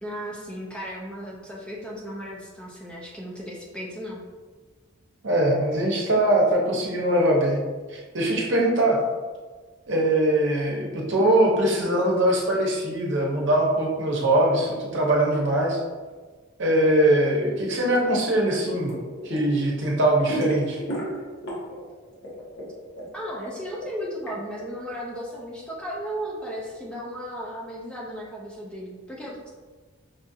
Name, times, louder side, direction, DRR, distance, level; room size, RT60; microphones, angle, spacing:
voice 1, 0.0-4.2 23.1-29.5, equal, 5° left, -4 dB, 0.4 m, -35 dB
voice 2, 5.2-7.6 7.9-9.0 9.9-15.8 16.6-18.9 19.2-20.8, right 1 dB, 60° right, -2 dB, 0.8 m, -22 dB
sound 1, 18.9-19.5 19.8-21.9 22.1-24.3, right 2 dB, 60° left, 1.2 m, -33 dB
5.4 x 2.4 x 2.7 m, 1.4 s
head